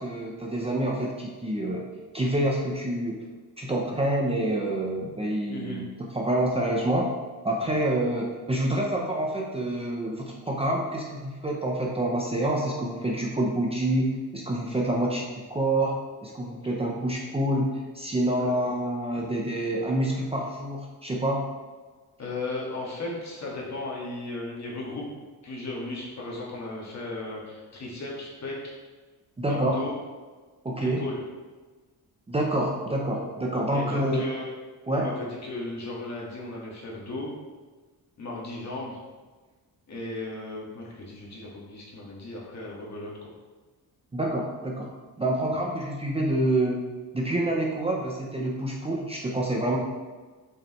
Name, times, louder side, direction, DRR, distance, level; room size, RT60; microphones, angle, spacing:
voice 1, 0.0-1.9 2.1-3.2 3.6-7.1 7.4-21.4 29.4-29.8 30.6-31.0 32.3-34.3 34.9-35.1 44.1-44.9 45.2-46.8 47.1-49.8, right 1 dB, 15° right, -2 dB, 0.6 m, -27 dB
voice 2, 5.5-5.8 18.4-18.6 22.2-25.1 25.4-28.7 29.5-29.9 30.8-31.2 33.7-34.5 34.9-37.3 38.2-39.0 39.9-43.3, left 2 dB, 45° left, -3 dB, 1.8 m, -36 dB
7.6 x 5.2 x 3.1 m, 1.3 s
wide cardioid pair, 155°, 37 cm